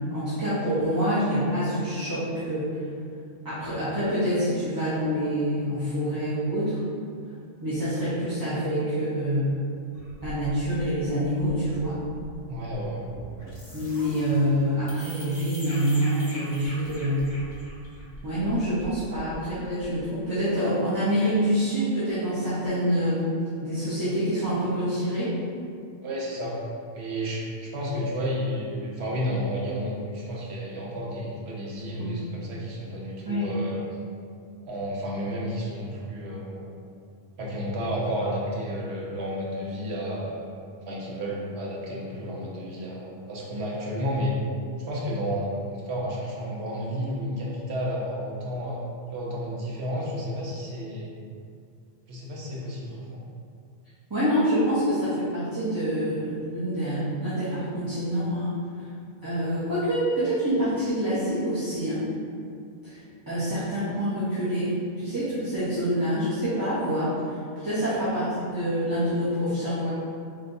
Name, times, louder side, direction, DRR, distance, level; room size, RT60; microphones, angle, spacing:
voice 1, 0.1-2.7 3.4-6.8 7.6-9.6 10.2-12.0 13.7-17.3 18.2-23.3 23.6-25.3 32.0-32.1 33.3-33.5 54.1-58.6 59.2-62.0 62.8-63.0 63.3-67.1 67.6-69.9, equal, 20° right, -12 dB, 0.8 m, -26 dB
sound 1, 9.9-20.0, equal, 40° left, 0.9 m, -43 dB
voice 2, 12.5-13.0 26.0-26.6 26.9-33.8 34.6-36.7 37.4-40.5 40.9-44.4 44.8-48.8 49.1-51.2 52.1-53.2 67.8-68.0, equal, 65° right, -4 dB, 1.0 m, -31 dB
3.3 x 2.8 x 3.9 m, 2.3 s
omnidirectional pair, 1.2 m